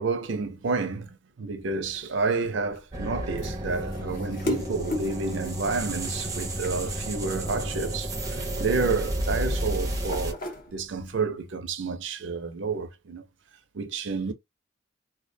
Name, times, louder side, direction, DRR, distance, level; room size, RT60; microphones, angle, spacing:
voice 1, 0.0-10.4 10.7-13.2 13.7-14.3, right 4 dB, 70° right, 0.5 m, -30 dB
sound 1, 1.6-11.2, left 2 dB, 45° left, 0.6 m, -39 dB
sound 2, 2.9-10.3, right 1 dB, 15° right, 0.5 m, -31 dB
2.3 x 2.1 x 2.6 m
head